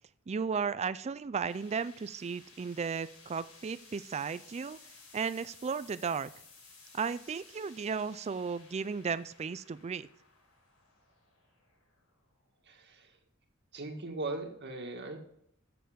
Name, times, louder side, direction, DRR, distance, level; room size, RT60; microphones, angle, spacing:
voice 1, 0.3-4.8 5.1-6.3 6.9-10.1, right 5 dB, 30° right, 15 dB, 0.4 m, -35 dB
sound 1, 1.4-12.6, left 4 dB, 80° left, 4.8 m, -57 dB
voice 2, 12.7-13.1 13.7-15.2, right 2 dB, 55° right, 4 dB, 1.9 m, -39 dB
14.0 x 6.9 x 5.1 m, 0.72 s
head